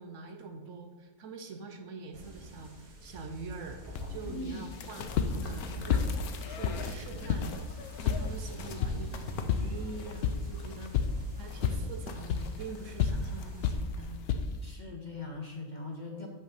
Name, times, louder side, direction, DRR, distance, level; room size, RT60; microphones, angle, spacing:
voice 1, 0.0-3.8 4.1-6.1 6.5-7.5 8.0-10.9 11.4-14.2, right 4 dB, 65° right, 5 dB, 1.0 m, -44 dB
sound 1, 2.1-13.7, right 1 dB, 35° right, 1.1 m, -47 dB
sound 2, 3.9-14.7, left 6 dB, 65° left, 0.6 m, -33 dB
voice 2, 4.2-4.7 14.6-16.3, left 2 dB, 40° left, 0 dB, 0.8 m, -40 dB
sound 3, 4.7-14.3, left 4 dB, 90° left, 1.1 m, -45 dB
8.5 x 3.5 x 5.6 m, 1.3 s
omnidirectional pair, 1.5 m